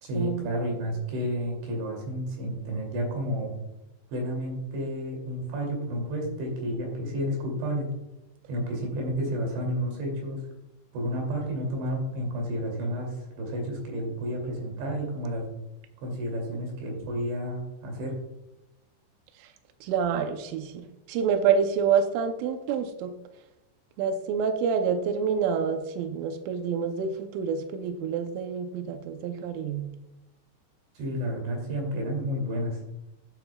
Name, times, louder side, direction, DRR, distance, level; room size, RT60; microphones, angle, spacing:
voice 1, 0.0-3.6 4.1-7.9 8.5-10.4 10.9-15.5 16.0-18.1 31.0-32.8, equal, 70° right, 1 dB, 4.9 m, -31 dB
voice 2, 19.8-23.1 24.0-29.9, right 6 dB, 90° right, 7 dB, 3.3 m, -27 dB
13.0 x 9.4 x 2.3 m, 0.96 s
omnidirectional pair, 5.5 m